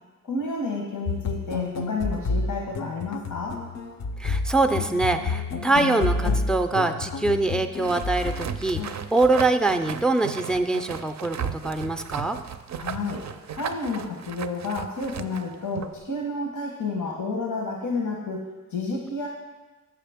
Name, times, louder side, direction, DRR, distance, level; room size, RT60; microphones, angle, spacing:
voice 1, 0.2-3.6 12.7-13.2 13.5-19.3, left 3 dB, 90° left, -1 dB, 1.1 m, -30 dB
sound 1, 1.1-8.9, left 3 dB, 55° left, 0.5 m, -29 dB
voice 2, 4.2-12.4, right 2 dB, ahead, 6 dB, 0.4 m, -24 dB
sound 2, 7.8-16.0, right 7 dB, 55° right, 0.4 m, -36 dB
6.9 x 6.6 x 3.5 m, 1.2 s
cardioid pair, 45°, 33 cm